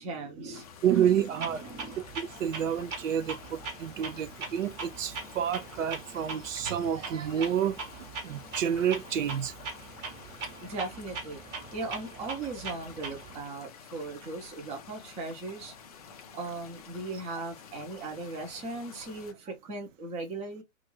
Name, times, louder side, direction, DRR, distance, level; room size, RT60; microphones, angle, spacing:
voice 1, 0.0-0.7 1.4-1.9 10.6-11.4 11.7-15.7 16.3-20.6, right 3 dB, 15° right, 0.7 m, -38 dB
sound 1, 0.5-19.3, left 7 dB, 30° left, 0.4 m, -50 dB
voice 2, 0.8-1.6 2.2-9.5, right 9 dB, 65° right, 0.5 m, -29 dB
Clock, 1.4-13.4, right 4 dB, 35° right, 1.2 m, -41 dB
2.6 x 2.5 x 3.1 m
hypercardioid pair, 125°, 41 cm